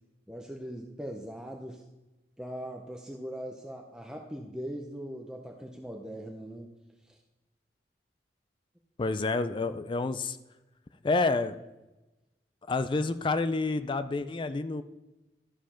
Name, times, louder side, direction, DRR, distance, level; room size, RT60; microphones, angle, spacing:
voice 1, 0.3-1.8 2.4-6.8 7.1-7.2, equal, 5° right, 1 dB, 0.7 m, -40 dB
voice 2, 9.0-10.4 11.0-11.6 12.7-14.8, left 3 dB, 30° left, 12 dB, 0.4 m, -28 dB
12.5 x 5.1 x 5.7 m, 1.0 s
head